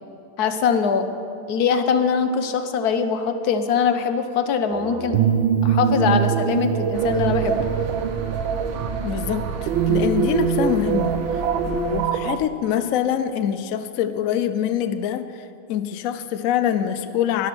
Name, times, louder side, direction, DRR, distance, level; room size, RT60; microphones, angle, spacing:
voice 1, 0.4-1.1 1.5-5.2 5.6-7.6, left 6 dB, 60° left, 8 dB, 1.2 m, -22 dB
sound 1, 4.7-12.4, right 7 dB, 90° right, 1.4 m, -23 dB
sound 2, 6.9-12.1, right 4 dB, 50° right, 0.9 m, -33 dB
voice 2, 9.0-17.5, left 9 dB, 80° left, 10 dB, 0.7 m, -25 dB
12.0 x 11.5 x 6.0 m, 2.6 s
omnidirectional pair, 2.1 m